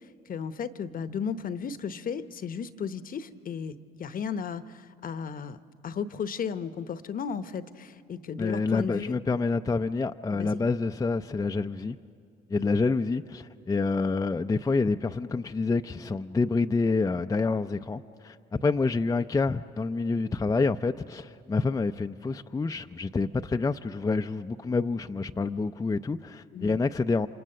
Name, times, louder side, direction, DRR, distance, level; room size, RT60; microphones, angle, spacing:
voice 1, 0.3-5.6 5.8-9.1 10.3-10.6 26.5-26.8, left 6 dB, 50° left, 0.9 m, -34 dB
voice 2, 8.4-12.0 12.5-27.3, left 3 dB, 20° left, 0.5 m, -27 dB
28.5 x 26.5 x 6.7 m
supercardioid pair, 65°, 19 cm